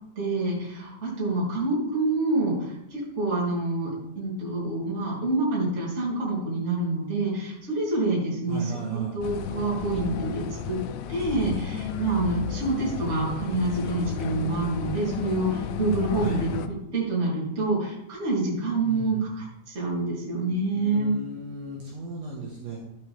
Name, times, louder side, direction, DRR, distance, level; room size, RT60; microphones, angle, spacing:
voice 1, 0.1-10.8 11.1-21.1, right 2 dB, 15° right, -5 dB, 2.9 m, -27 dB
voice 2, 8.5-9.2 16.2-16.4 18.8-19.3 20.8-22.8, right 3 dB, 65° right, -4 dB, 3.1 m, -36 dB
sound 1, 9.2-16.7, left 9 dB, 85° left, 3.2 m, -33 dB
12.5 x 8.1 x 3.6 m, 0.83 s
omnidirectional pair, 5.6 m